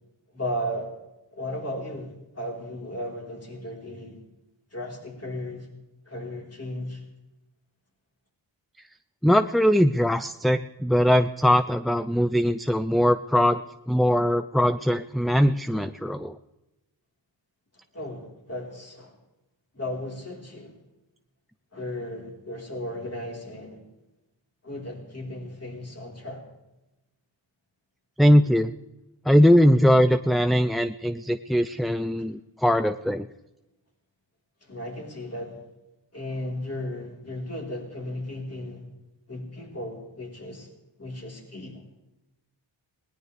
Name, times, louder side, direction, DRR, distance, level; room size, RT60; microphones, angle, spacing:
voice 1, 0.3-0.9 1.3-4.2 4.7-5.7 6.1-7.0 17.9-19.1 19.7-20.8 21.7-23.8 24.6-26.4 30.6-30.7 34.6-35.6 36.1-38.9 39.3-40.7 41.0-41.8, left 1 dB, 30° left, -1 dB, 4.1 m, -35 dB
voice 2, 9.2-13.6 13.9-16.4 28.2-28.7 29.3-33.3, equal, ahead, 11 dB, 0.4 m, -21 dB
20.5 x 18.0 x 3.4 m, 0.99 s
wide cardioid pair, 70°, 45 cm